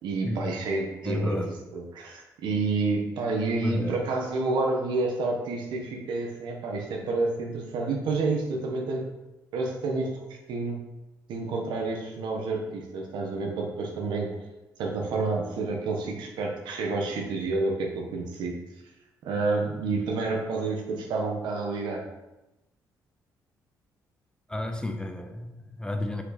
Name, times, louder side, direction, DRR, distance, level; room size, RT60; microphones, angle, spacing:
voice 1, 0.0-9.1 9.5-10.2 10.5-10.8 11.3-14.4 14.8-18.6 19.2-22.0, right 3 dB, 85° right, 1 dB, 1.4 m, -29 dB
voice 2, 1.0-1.6 3.6-4.0 24.5-26.2, left 1 dB, 10° left, 6 dB, 0.8 m, -31 dB
5.9 x 5.7 x 4.2 m, 0.99 s
cardioid pair, 90°, 7 cm